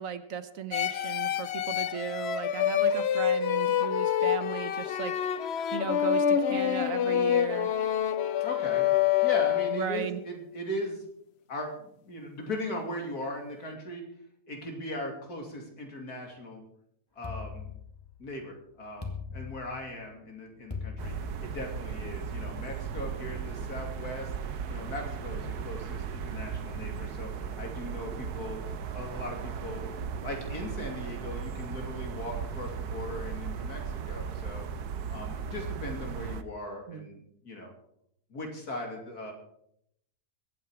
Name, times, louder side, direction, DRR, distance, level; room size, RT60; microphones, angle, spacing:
voice 1, 0.0-5.4 5.7-7.7 9.7-10.2 36.9-37.1, right 8 dB, 60° right, 12 dB, 1.3 m, -36 dB
sound 1, 0.7-10.0, left 9 dB, 55° left, 0.7 m, -27 dB
voice 2, 8.4-8.9 9.2-11.0 11.5-14.0 14.5-16.6 17.2-17.7 18.2-21.1 21.4-24.3 24.7-28.6 28.9-29.9 30.2-34.7 35.1-37.7 38.3-39.3, left 1 dB, 75° left, 2 dB, 3.3 m, -38 dB
sound 2, 17.2-18.3 19.0-20.1 20.7-21.8, left 5 dB, 15° left, 1.9 m, -40 dB
sound 3, 21.0-36.4, right 6 dB, 85° right, 1.5 m, -36 dB
22.5 x 9.1 x 4.8 m, 0.71 s
omnidirectional pair, 1.6 m